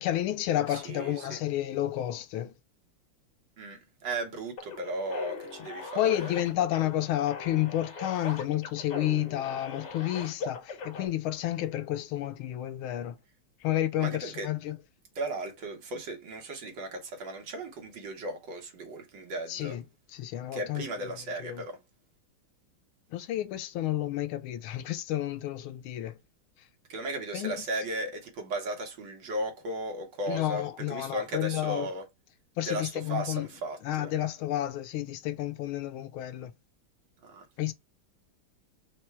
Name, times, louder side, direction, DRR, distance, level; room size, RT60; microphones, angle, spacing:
voice 1, 0.0-2.5 5.9-13.1 13.6-14.8 19.5-19.8 20.1-21.6 23.1-26.2 27.3-27.7 30.3-31.9 32.6-33.5 33.8-36.5 37.6-37.7, left 13 dB, 85° left, 1.5 m, -31 dB
voice 2, 4.0-6.1 14.0-14.5 15.2-19.8 20.5-21.8 26.9-32.0 32.7-34.1 37.3-37.4, right 1 dB, 65° right, 1.8 m, -35 dB
sound 1, 4.6-11.1, left 4 dB, 60° left, 1.7 m, -41 dB
4.3 x 2.2 x 4.4 m
omnidirectional pair, 2.3 m